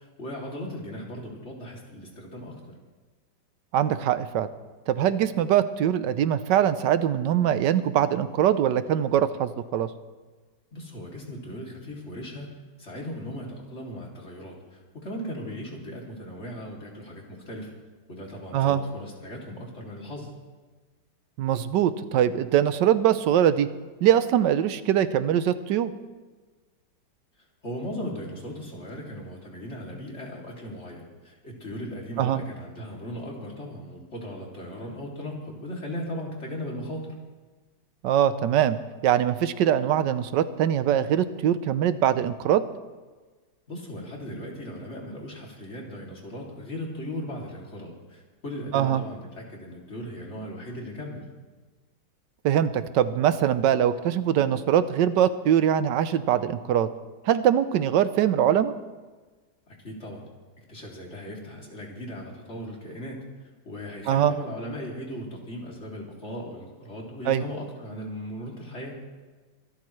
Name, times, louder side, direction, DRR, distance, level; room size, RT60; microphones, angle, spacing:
voice 1, 0.0-2.6 10.7-12.5 12.8-17.7 18.1-20.3 27.6-37.2 43.7-51.2 59.7-60.2 60.7-69.0, equal, 40° left, -2 dB, 3.1 m, -37 dB
voice 2, 3.7-4.5 4.9-9.9 18.5-18.8 21.4-23.7 24.0-25.9 32.2-32.4 38.0-38.8 39.0-42.6 48.7-49.0 52.4-56.9 57.2-58.7 64.1-64.4 67.3-67.4, right 10 dB, 90° right, 13 dB, 1.4 m, -22 dB
24.5 x 13.0 x 3.2 m, 1.3 s
omnidirectional pair, 1.9 m